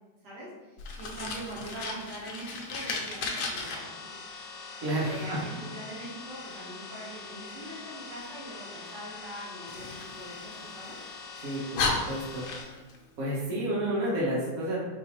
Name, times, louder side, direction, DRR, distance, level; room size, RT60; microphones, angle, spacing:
voice 1, 0.2-4.1 4.9-11.0 13.6-13.9, right 1 dB, 75° right, -6 dB, 1.6 m, -43 dB
Fire, 0.8-3.7 9.7-10.9 11.4-11.5 11.7-13.0, left 3 dB, 90° left, 1.3 m, -34 dB
sound 1, 3.6-12.6, left 4 dB, 60° left, 0.5 m, -44 dB
voice 2, 4.8-5.4 11.4-12.4 13.2-14.8, right 1 dB, 60° right, -6 dB, 1.4 m, -30 dB
4.1 x 3.1 x 2.8 m, 1.2 s
omnidirectional pair, 1.8 m